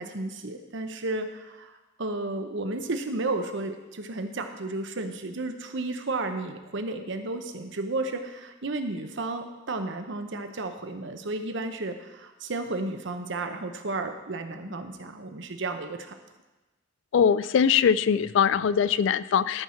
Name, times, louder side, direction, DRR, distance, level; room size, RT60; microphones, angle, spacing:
voice 1, 0.0-16.2, right 2 dB, 65° right, 7 dB, 0.9 m, -33 dB
voice 2, 17.1-19.6, left 7 dB, 70° left, 17 dB, 0.3 m, -22 dB
13.5 x 4.6 x 5.7 m, 1.1 s
head